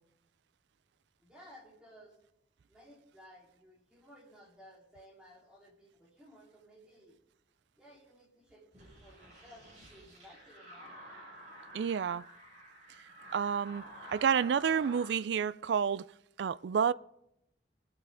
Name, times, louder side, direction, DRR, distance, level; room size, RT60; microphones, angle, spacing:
voice 1, 1.2-2.2 2.7-7.2 7.8-10.9, equal, 5° right, 3.8 m, -57 dB
sound 1, 8.7-15.2, equal, 45° right, 6.0 m, -51 dB
voice 2, 11.7-12.2 13.3-13.8 14.1-16.1 16.4-16.9, right 7 dB, 75° right, 0.3 m, -29 dB
21.0 x 8.9 x 3.8 m
head